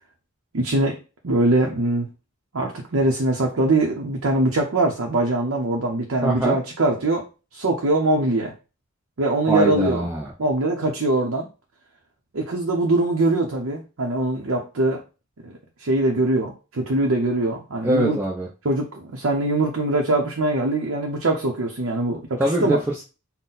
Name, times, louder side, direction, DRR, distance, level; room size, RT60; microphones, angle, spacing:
voice 1, 0.5-1.0 1.2-2.1 2.5-7.2 7.5-8.5 9.2-10.1 10.4-11.5 12.3-15.0 15.4-15.5 15.8-18.2 18.6-22.8, right 2 dB, 65° right, 0 dB, 0.7 m, -22 dB
voice 2, 6.2-6.6 9.5-10.3 17.8-18.5 22.4-23.0, right 1 dB, 10° right, -3 dB, 0.4 m, -22 dB
4.1 x 2.1 x 3.9 m, 0.31 s
head